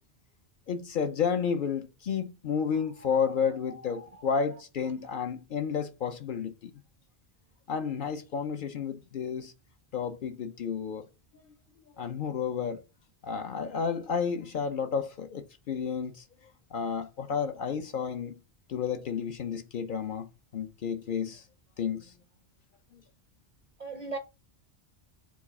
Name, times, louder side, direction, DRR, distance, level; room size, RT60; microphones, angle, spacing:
voice 1, 0.7-6.7 7.7-9.5 9.9-11.0 12.0-12.8 13.2-16.2 16.7-18.4 18.7-20.3 20.5-21.4 21.8-22.1, left 6 dB, 60° left, 0.6 m, -31 dB
voice 2, 2.7-4.3 23.8-24.2, right 3 dB, 50° right, 0.5 m, -42 dB
4.6 x 2.3 x 4.1 m
omnidirectional pair, 1.1 m